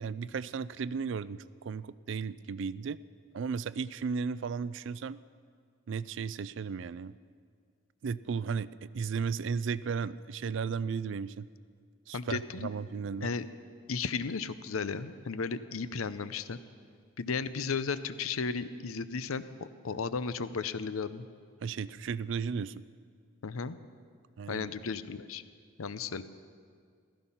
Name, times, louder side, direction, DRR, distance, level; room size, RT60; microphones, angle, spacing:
voice 1, 0.0-3.0 3.3-5.2 5.9-7.1 8.0-11.5 12.1-13.3 21.6-22.8 24.4-24.7, right 5 dB, 60° right, 18 dB, 0.4 m, -35 dB
voice 2, 12.1-12.7 13.2-13.5 13.9-16.6 17.2-19.5 19.8-21.2 23.4-23.8 24.5-25.4 25.8-26.2, left 5 dB, 85° left, 13 dB, 0.6 m, -34 dB
15.5 x 14.5 x 5.7 m, 2.1 s
head